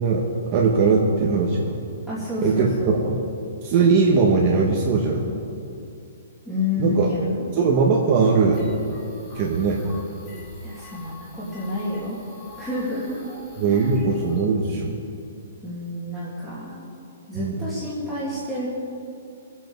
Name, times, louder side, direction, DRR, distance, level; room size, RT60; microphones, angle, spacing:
voice 1, 0.0-1.8 2.4-3.2 3.6-5.3 6.8-7.1 7.6-8.6 9.3-9.8 13.6-14.9 17.3-17.6, right 4 dB, 30° right, -2 dB, 1.2 m, -20 dB
voice 2, 2.1-2.9 6.5-7.6 10.6-12.2 12.6-13.2 13.7-13.9 15.6-16.8 17.3-18.7, left 2 dB, ahead, -12 dB, 2.0 m, -29 dB
sound 1, 8.5-14.4, left 1 dB, 20° left, 2.3 m, -43 dB
23.0 x 8.2 x 4.6 m, 2.5 s
hypercardioid pair, 170°, 0 cm